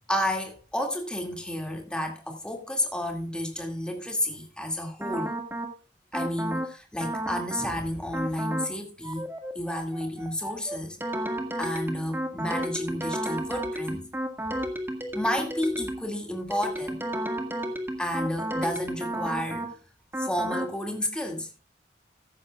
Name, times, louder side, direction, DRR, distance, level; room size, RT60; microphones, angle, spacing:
voice 1, 0.1-5.3 6.1-9.3 9.5-11.0 11.6-14.0 15.1-17.0 18.0-19.8 20.2-21.5, left 1 dB, 5° left, 2.2 m, -31 dB
sound 1, 5.0-5.7 6.1-6.7 7.0-7.7 8.1-8.7 9.0-16.1 16.5-19.7 20.1-20.7, right 1 dB, 10° right, 1.7 m, -32 dB
14.5 x 12.0 x 2.4 m
head